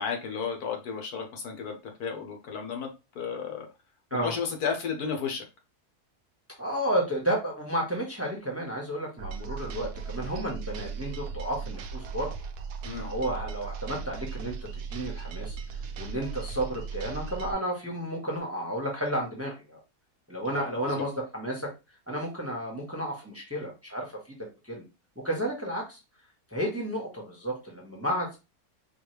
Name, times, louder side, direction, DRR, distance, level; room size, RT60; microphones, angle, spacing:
voice 1, 0.0-2.9 3.1-3.7 4.2-5.4 12.8-13.1 20.5-21.0, left 6 dB, 80° left, 3 dB, 1.5 m, -33 dB
voice 2, 6.6-12.3 13.0-14.5 14.9-19.8 20.3-21.7 22.1-24.2 24.7-24.8 25.2-26.0 26.5-28.4, right 1 dB, 10° right, -2 dB, 0.9 m, -32 dB
sound 1, 9.2-17.5, right 5 dB, 80° right, 1.1 m, -37 dB
4.7 x 2.4 x 3.2 m, 0.28 s
omnidirectional pair, 1.6 m